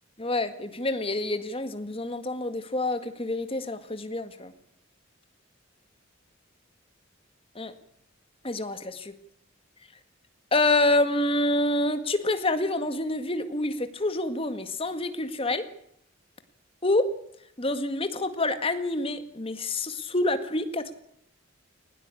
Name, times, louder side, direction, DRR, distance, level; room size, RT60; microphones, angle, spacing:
voice 1, 0.2-4.5 7.5-7.7 8.4-9.1 10.5-15.6 16.8-17.0 17.6-20.9, left 2 dB, 30° left, 9 dB, 1.8 m, -27 dB
19.5 x 17.5 x 8.5 m, 0.70 s
head